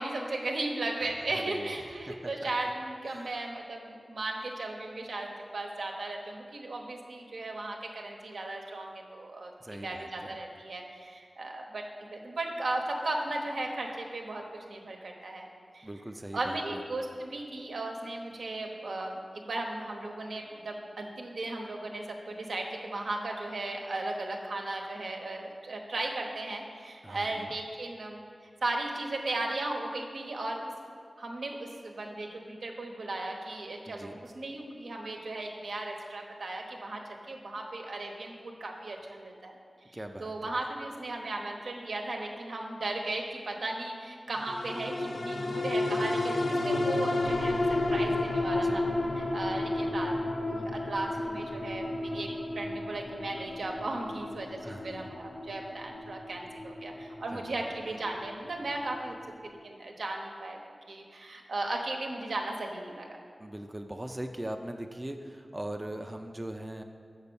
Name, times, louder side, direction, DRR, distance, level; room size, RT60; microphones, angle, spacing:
voice 1, 0.0-9.5 9.8-15.5 15.7-15.9 16.3-28.2 28.6-30.7 31.2-37.0 37.3-39.6 40.2-48.9 49.2-52.3 52.5-59.1 59.4-60.6 60.9-63.1, right 2 dB, 85° right, 1 dB, 1.0 m, -36 dB
voice 2, 1.0-2.5 3.1-3.5 9.6-10.4 15.8-16.8 27.0-27.5 33.8-34.2 39.9-40.7 48.5-48.9 54.6-55.1 57.3-57.6 63.4-66.8, right 1 dB, 20° right, 4 dB, 0.4 m, -41 dB
sound 1, 44.4-59.1 59.5-59.6, left 2 dB, 65° left, 0.7 m, -32 dB
7.1 x 5.4 x 6.9 m, 2.2 s
wide cardioid pair, 90°, 0 cm